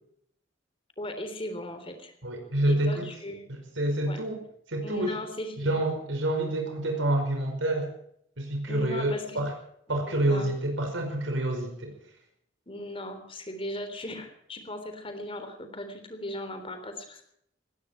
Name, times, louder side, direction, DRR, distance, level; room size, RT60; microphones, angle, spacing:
voice 1, 1.0-2.1 2.7-3.5 4.1-4.3 4.8-5.8 8.7-9.4 9.9-10.5 12.7-17.2, left 1 dB, 30° left, 8 dB, 3.6 m, -38 dB
voice 2, 2.2-3.1 3.5-4.4 4.7-5.2 5.6-7.9 8.4-9.5 9.9-12.0, right 1 dB, 85° right, 3 dB, 5.3 m, -28 dB
19.5 x 16.5 x 4.6 m, 0.69 s
head